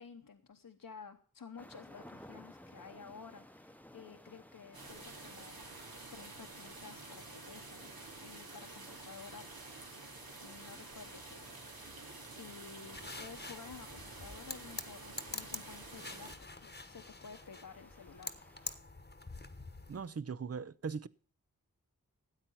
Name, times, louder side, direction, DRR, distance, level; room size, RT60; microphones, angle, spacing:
voice 1, 0.0-5.7 6.1-7.9 8.2-9.4 10.4-11.5 12.0-18.3, left 5 dB, 70° left, 0.9 m, -52 dB
sound 1, 1.6-18.8, left 1 dB, 5° left, 0.8 m, -60 dB
sound 2, 4.7-16.3, right 3 dB, 85° right, 2.3 m, -50 dB
sound 3, 12.9-20.1, left 3 dB, 30° left, 1.1 m, -47 dB
voice 2, 19.9-21.1, right 5 dB, 45° right, 0.6 m, -39 dB
13.0 x 8.9 x 5.6 m
wide cardioid pair, 45°, 35 cm